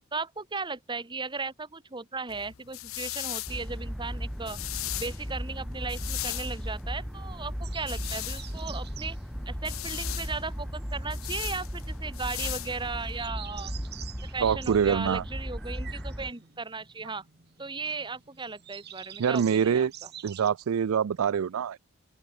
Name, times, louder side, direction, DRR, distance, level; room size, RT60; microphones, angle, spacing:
voice 1, 0.1-4.6 5.0-9.2 9.5-13.8 14.2-17.2 17.6-19.8, right 4 dB, 20° right, 1.5 m, -36 dB
sound 1, 2.3-13.3, left 17 dB, 75° left, 0.7 m, -39 dB
sound 2, 3.5-16.3, equal, ahead, 0.9 m, -36 dB
sound 3, 7.6-20.5, right 11 dB, 50° right, 1.8 m, -48 dB
voice 2, 14.4-15.2 19.2-19.9 20.2-21.8, right 7 dB, 90° right, 0.4 m, -25 dB
open air
head